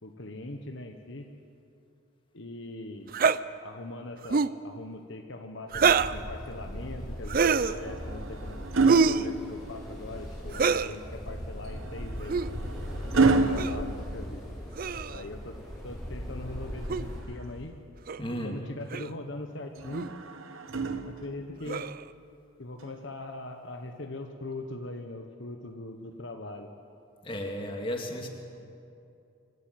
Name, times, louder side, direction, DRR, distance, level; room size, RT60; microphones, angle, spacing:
voice 1, 0.0-1.3 2.3-3.1 3.6-8.6 9.0-12.4 13.2-14.4 15.1-15.5 15.8-17.8 18.4-20.1 21.2-21.8 22.6-26.7, left 2 dB, 60° left, 5 dB, 1.1 m, -41 dB
sound 1, 3.1-3.4 4.2-4.6 5.7-6.2 7.3-7.8 8.9-9.3 10.5-10.9 12.2-12.5 13.6-13.8 14.8-15.2 16.9-17.0 18.1-18.2 18.9-19.1 19.9-20.1 21.7-22.0, right 5 dB, 45° right, 0.4 m, -25 dB
sound 2, 5.7-17.2, equal, ahead, 6.1 m, -39 dB
sound 3, 7.7-10.1 11.6-14.8 16.6-17.8 19.7-21.6 22.8-23.0, right 3 dB, 75° right, 1.1 m, -30 dB
voice 2, 18.2-18.6 27.2-28.3, equal, 25° left, 2 dB, 2.2 m, -34 dB
26.0 x 12.0 x 9.1 m, 2.6 s
head